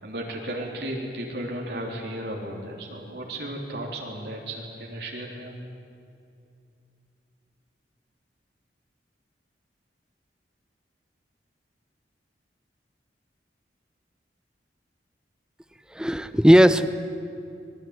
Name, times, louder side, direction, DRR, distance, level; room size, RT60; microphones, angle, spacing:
voice 1, 0.0-5.6, right 1 dB, 65° right, -1 dB, 3.7 m, -34 dB
voice 2, 15.9-16.9, equal, 5° right, 12 dB, 0.8 m, -16 dB
25.5 x 22.0 x 9.7 m, 2.5 s
head